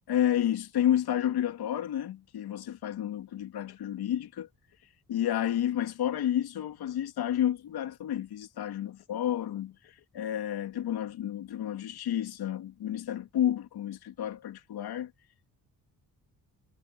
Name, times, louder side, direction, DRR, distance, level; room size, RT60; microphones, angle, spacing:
voice 1, 0.1-4.5 5.1-9.7 10.1-15.1, left 11 dB, 80° left, 2.6 m, -30 dB
cardioid pair, 95°, 38 cm